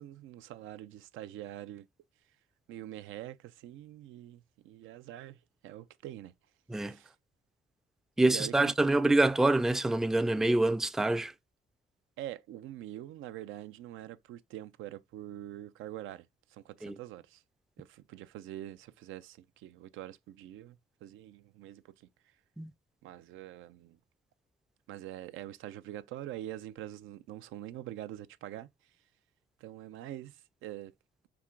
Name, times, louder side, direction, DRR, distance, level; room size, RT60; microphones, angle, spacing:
voice 1, 0.0-1.9 2.7-6.3 6.8-7.1 8.2-8.7 12.2-17.4 17.8-22.3 23.0-24.0 24.9-28.9 29.6-30.9, right 13 dB, 90° right, 0.4 m, -45 dB
voice 2, 8.2-11.3 16.8-17.0 22.6-22.7, right 2 dB, ahead, 0.3 m, -26 dB
5.8 x 2.2 x 3.7 m
cardioid pair, 90°, 20 cm